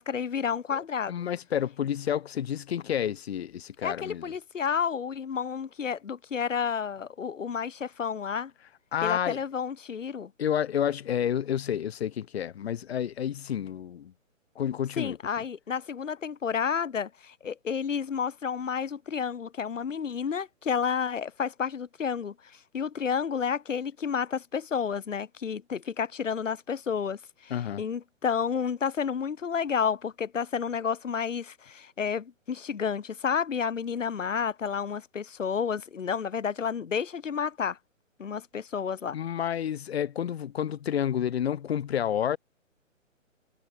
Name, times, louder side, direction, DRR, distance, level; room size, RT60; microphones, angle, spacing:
voice 1, 0.0-1.2 3.8-8.5 9.0-10.3 15.0-22.3 22.7-27.5 27.8-37.8 38.2-39.2, left 7 dB, 70° left, 3.2 m, -30 dB
voice 2, 0.7-4.3 8.9-9.4 10.4-14.1 14.6-15.2 27.5-27.8 39.1-42.4, left 9 dB, 50° left, 5.4 m, -30 dB
hypercardioid pair, 145°, 40 cm